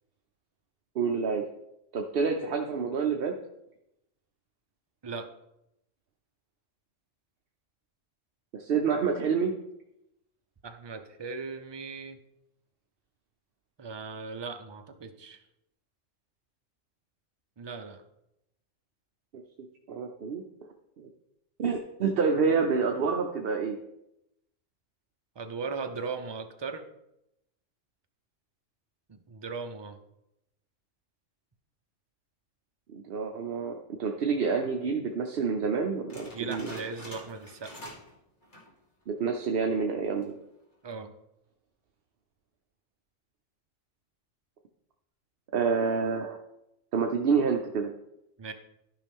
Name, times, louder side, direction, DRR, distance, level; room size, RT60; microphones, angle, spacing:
voice 1, 0.9-1.5 1.9-3.3 8.5-9.5 19.3-19.4 19.9-20.4 21.0-21.1 21.6-23.8 32.9-36.7 39.1-40.3 45.5-46.4 46.9-47.9, right 5 dB, 55° right, 2 dB, 0.8 m, -28 dB
voice 2, 5.0-5.3 10.6-12.2 13.8-15.4 17.6-18.0 25.4-26.9 29.1-30.0 36.3-37.8 40.8-41.1 48.4-48.5, right 4 dB, 40° right, 7 dB, 0.4 m, -38 dB
sound 1, 36.1-38.2 38.4-38.8 39.3-39.4 40.0-40.4, equal, 40° left, 2.0 m, -46 dB
13.0 x 5.4 x 3.6 m, 0.85 s
omnidirectional pair, 1.3 m